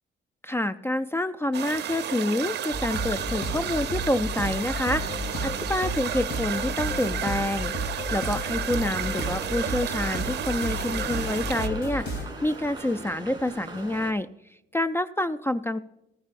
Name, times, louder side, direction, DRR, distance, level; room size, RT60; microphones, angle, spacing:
voice 1, 0.4-14.3 14.7-15.8, left 1 dB, 10° left, 13 dB, 0.3 m, -28 dB
sound 1, 1.5-11.7, right 10 dB, 60° right, 0.7 m, -32 dB
sound 2, 2.7-12.2, equal, 55° left, 2.6 m, -32 dB
sound 3, 9.0-14.1, right 3 dB, 20° right, 2.7 m, -41 dB
14.0 x 14.0 x 2.5 m, 0.84 s
cardioid pair, 90°, 20 cm